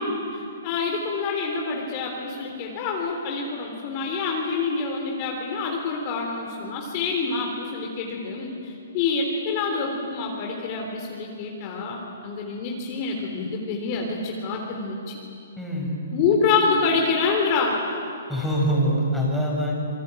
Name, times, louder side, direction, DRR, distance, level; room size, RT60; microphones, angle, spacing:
voice 1, 0.0-15.2 16.1-17.8, left 4 dB, 35° left, 0 dB, 3.5 m, -26 dB
voice 2, 15.6-16.0 18.3-19.7, equal, ahead, -3 dB, 5.9 m, -24 dB
27.0 x 21.5 x 9.0 m, 2.5 s
hypercardioid pair, 155°, 0 cm